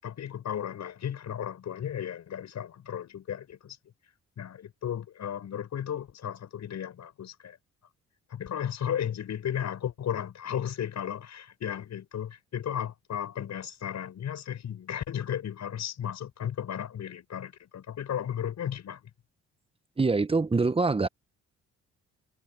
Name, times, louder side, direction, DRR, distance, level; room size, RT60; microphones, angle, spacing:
voice 1, 0.0-3.8 4.4-7.6 8.3-19.1, left 9 dB, 65° left, 6.9 m, -34 dB
voice 2, 20.0-21.1, right 3 dB, 20° right, 1.0 m, -24 dB
cardioid pair, 90°, 30 cm